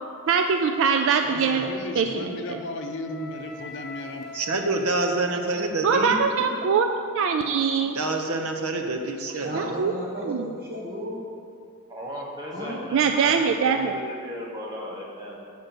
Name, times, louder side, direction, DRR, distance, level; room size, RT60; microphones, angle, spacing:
voice 1, 0.3-2.6 5.8-6.9 7.1-8.0 9.5-9.9 10.2-10.5 12.9-13.9, right 6 dB, 60° right, 6 dB, 0.3 m, -23 dB
voice 2, 1.3-4.2, left 2 dB, 55° left, 6 dB, 0.6 m, -35 dB
Wind instrument woodwind instrument, 2.4-6.4, left 2 dB, ahead, 1.4 m, -43 dB
voice 3, 4.3-6.2 8.0-9.8, right 2 dB, 80° right, 4 dB, 0.8 m, -27 dB
voice 4, 5.8-6.2 11.9-15.4, equal, 20° right, -3 dB, 1.2 m, -37 dB
voice 5, 9.4-11.3 12.5-12.8, equal, 45° right, -5 dB, 1.2 m, -34 dB
6.6 x 5.2 x 6.2 m, 2.4 s
head